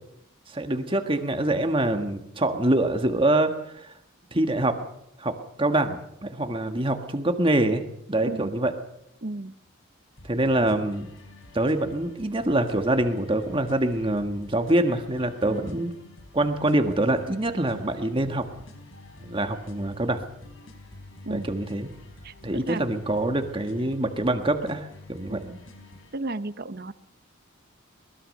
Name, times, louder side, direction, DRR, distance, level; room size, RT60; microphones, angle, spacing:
voice 1, 0.5-3.9 4.3-4.8 5.2-7.8 8.1-8.7 10.2-11.1 11.5-15.9 16.3-18.4 19.2-20.2 21.3-21.9 22.4-25.4, right 1 dB, 25° right, 6 dB, 1.6 m, -25 dB
voice 2, 8.2-8.5 9.2-9.5 15.5-15.8 21.2-21.5 22.2-22.8 25.3-25.6 26.1-26.9, right 2 dB, 50° right, 13 dB, 0.9 m, -34 dB
sound 1, 10.1-26.1, left 1 dB, 70° left, 4.4 m, -48 dB
22.5 x 20.0 x 6.6 m, 0.78 s
head